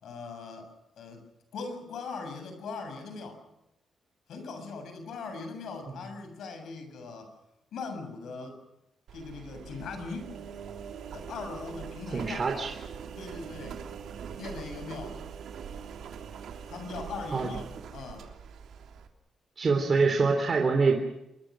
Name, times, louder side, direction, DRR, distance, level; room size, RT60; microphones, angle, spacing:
voice 1, 0.0-1.2 1.5-3.4 4.3-7.3 7.7-8.6 9.1-10.3 11.1-12.4 13.2-13.8 14.4-15.2 16.7-17.6 17.9-18.3, left 4 dB, 75° left, 7 dB, 7.1 m, -40 dB
Engine, 9.1-19.1, right 7 dB, 80° right, 3.1 m, -42 dB
voice 2, 12.1-12.7 17.3-17.5 19.6-20.9, right 4 dB, 35° right, 3 dB, 3.5 m, -25 dB
26.5 x 22.0 x 6.3 m, 0.87 s
cardioid pair, 130°, 0 cm